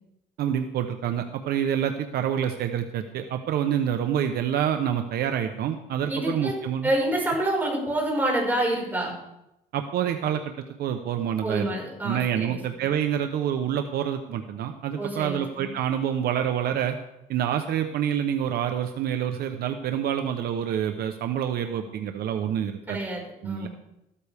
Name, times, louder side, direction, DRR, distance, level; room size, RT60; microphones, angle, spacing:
voice 1, 0.4-6.9 9.7-11.7 12.0-17.0 17.3-23.0 23.4-23.7, right 9 dB, 70° right, 6 dB, 1.0 m, -27 dB
voice 2, 6.1-6.5 6.8-9.1 11.4-12.6 15.0-15.7 22.9-23.7, right 1 dB, 10° right, -2 dB, 5.3 m, -27 dB
14.5 x 13.0 x 3.6 m, 0.85 s
cardioid pair, 110°, 17 cm